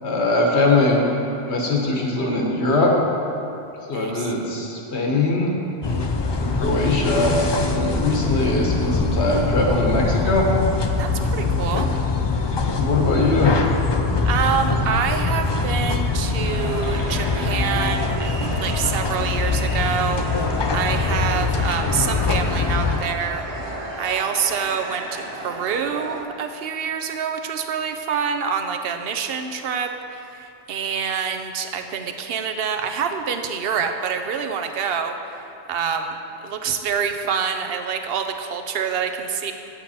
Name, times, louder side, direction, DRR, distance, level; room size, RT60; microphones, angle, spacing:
voice 1, 0.0-1.0 1.5-2.9 3.9-5.5 6.4-10.5 12.7-13.6, left 2 dB, 75° left, -1 dB, 1.5 m, -21 dB
voice 2, 3.9-4.3 11.0-11.9 14.2-35.4 35.7-36.2 36.4-39.5, right 6 dB, 65° right, 6 dB, 0.8 m, -26 dB
sound 1, 5.8-23.0, left 3 dB, 45° left, 0.3 m, -23 dB
sound 2, 16.5-26.2, right 1 dB, 90° right, 1.5 m, -34 dB
9.0 x 8.0 x 4.2 m, 2.8 s
omnidirectional pair, 1.1 m